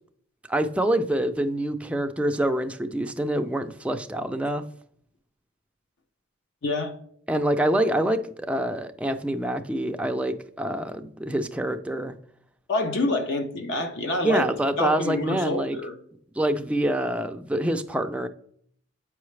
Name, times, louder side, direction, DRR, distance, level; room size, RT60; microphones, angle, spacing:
voice 1, 0.5-4.6 7.3-12.1 14.2-15.8 16.4-18.3, right 1 dB, 5° right, 6 dB, 0.3 m, -26 dB
voice 2, 6.6-6.9 12.7-14.5 14.8-16.0, left 2 dB, 60° left, 6 dB, 0.7 m, -27 dB
7.9 x 4.7 x 3.2 m, 0.62 s
head